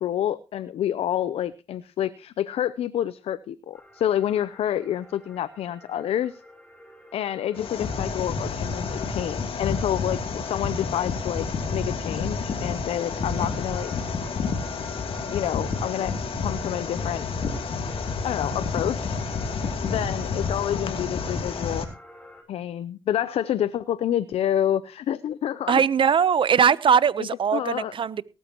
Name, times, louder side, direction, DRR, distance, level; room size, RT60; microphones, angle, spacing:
voice 1, 0.0-6.4 7.1-13.9 15.3-16.1 16.4-17.3 18.2-19.2 19.8-21.9 22.5-25.8 27.2-27.9, left 11 dB, 85° left, 16 dB, 0.6 m, -28 dB
sound 1, 3.7-22.4, left 1 dB, 10° left, 6.8 m, -50 dB
sound 2, 7.5-21.8, left 4 dB, 70° left, 2.8 m, -29 dB
voice 2, 25.7-28.2, right 7 dB, 60° right, 18 dB, 0.8 m, -20 dB
18.5 x 13.0 x 3.0 m, 0.33 s
cardioid pair, 70°, 10 cm